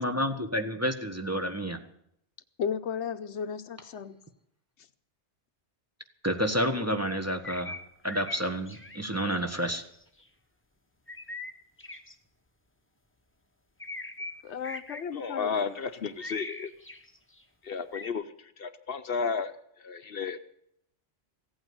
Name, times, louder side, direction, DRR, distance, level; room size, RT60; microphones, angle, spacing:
voice 1, 0.0-1.8 6.2-7.8 8.0-9.8, equal, 15° right, 4 dB, 1.3 m, -29 dB
voice 2, 2.6-4.2 14.4-15.6, left 7 dB, 80° left, 11 dB, 1.1 m, -34 dB
sound 1, 7.4-9.0 9.4-10.3 11.1-12.1 13.8-14.3 14.6-17.4 17.9-18.1, left 2 dB, 10° left, 1.1 m, -41 dB
voice 3, 15.1-16.7 17.6-20.4, left 5 dB, 60° left, 11 dB, 1.0 m, -33 dB
16.0 x 8.9 x 9.5 m, 0.72 s
omnidirectional pair, 1.2 m